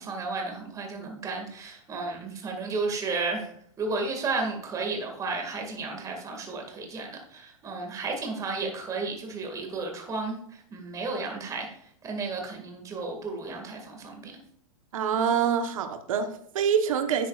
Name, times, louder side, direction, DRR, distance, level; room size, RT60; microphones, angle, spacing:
voice 1, 0.0-3.5 3.8-11.7 12.0-14.3, right 3 dB, 20° right, 2 dB, 2.0 m, -33 dB
voice 2, 14.9-17.3, right 7 dB, 75° right, 7 dB, 1.1 m, -26 dB
11.0 x 7.6 x 2.4 m, 0.67 s
hypercardioid pair, 140°, 17 cm